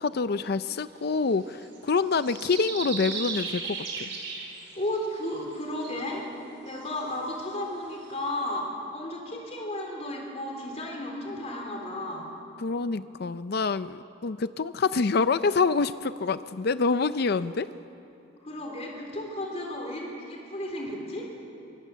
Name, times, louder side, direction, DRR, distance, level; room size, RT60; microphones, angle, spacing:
voice 1, 0.0-4.1 12.6-17.7, left 4 dB, 55° left, 13 dB, 0.5 m, -26 dB
sound 1, 1.0-5.6 5.8-6.0 6.7-7.1 7.5-7.6 8.0-8.1 8.5-8.6, right 5 dB, 75° right, 5.5 m, -36 dB
voice 2, 4.7-6.3 6.6-12.3 18.4-21.3, left 1 dB, 35° left, 0 dB, 3.6 m, -34 dB
23.5 x 21.0 x 7.5 m, 3.0 s
head